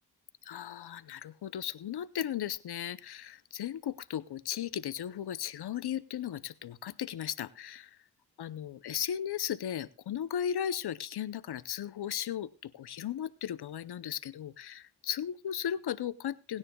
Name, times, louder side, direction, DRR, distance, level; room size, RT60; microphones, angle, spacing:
voice 1, 0.4-8.0 8.4-16.6, left 10 dB, 75° left, 16 dB, 0.7 m, -36 dB
22.0 x 9.9 x 2.3 m, 0.30 s
cardioid pair, 50°, 40 cm